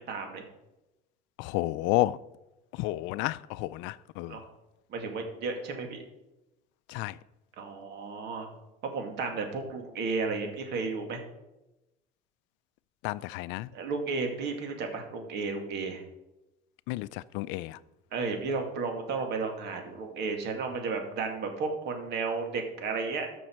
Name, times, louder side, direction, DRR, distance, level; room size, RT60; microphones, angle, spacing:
voice 1, 0.1-0.4 4.3-4.5 4.9-6.0 7.6-8.5 8.8-11.2 13.7-16.0 18.1-23.3, right 4 dB, 65° right, 2.2 m, -33 dB
voice 2, 1.4-2.2 2.7-4.4 6.9-7.2 13.0-13.7 16.9-17.8, left 17 dB, 85° left, 0.4 m, -31 dB
13.5 x 6.2 x 4.5 m
cardioid pair, 115°, 19 cm